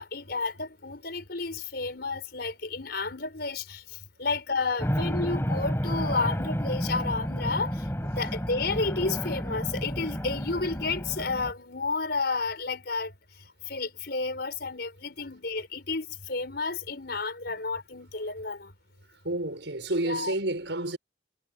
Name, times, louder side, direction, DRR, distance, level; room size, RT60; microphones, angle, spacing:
voice 1, 0.0-13.2 13.7-18.7 20.0-20.3, left 3 dB, 60° left, 5.2 m, -31 dB
sound 1, 4.8-11.5, equal, 15° left, 6.7 m, -31 dB
voice 2, 19.1-21.0, right 1 dB, 75° right, 6.2 m, -30 dB
head